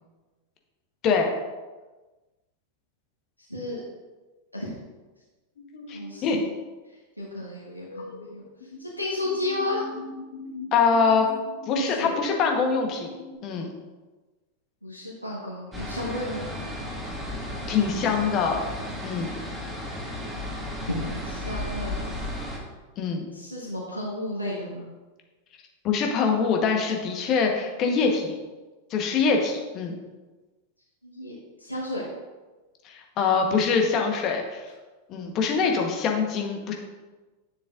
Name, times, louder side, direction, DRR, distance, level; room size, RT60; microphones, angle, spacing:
voice 1, 3.5-3.8 4.5-4.7 5.9-6.5 7.2-8.4 8.8-9.9 11.8-12.2 14.8-16.5 20.9-22.1 23.3-24.8 31.0-32.1, left 1 dB, 90° right, -5 dB, 1.4 m, -33 dB
sound 1, 5.6-6.1 7.9-8.9 9.2-13.4, left 2 dB, 60° left, 1.0 m, -41 dB
voice 2, 5.9-6.4 10.7-11.3 11.7-13.1 13.4-13.7 17.7-18.6 19.0-19.3 23.0-23.3 25.8-28.4 28.9-30.0 32.8-34.7 35.1-36.7, left 5 dB, 35° left, 2 dB, 1.2 m, -24 dB
sound 2, 15.7-22.6, left 1 dB, 5° right, 1.7 m, -34 dB
9.5 x 7.0 x 2.6 m, 1.2 s
figure-of-eight pair, 90°, 0 cm